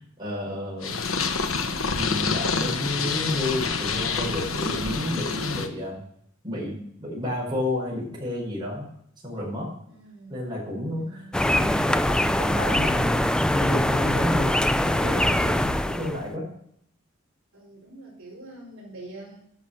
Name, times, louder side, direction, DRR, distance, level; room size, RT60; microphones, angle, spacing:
voice 1, 0.2-1.0 1.9-6.0 6.4-8.9 9.2-9.7 10.3-11.2 11.5-16.5, left 1 dB, 20° right, -5 dB, 5.0 m, -30 dB
Purr, 0.8-5.7, left 4 dB, 70° left, 1.1 m, -27 dB
voice 2, 9.9-10.5 10.9-11.7 17.5-19.4, right 2 dB, 70° right, -3 dB, 4.4 m, -44 dB
sound 1, 11.3-16.2, left 1 dB, 5° left, 0.3 m, -23 dB
11.0 x 6.2 x 6.9 m, 0.71 s
head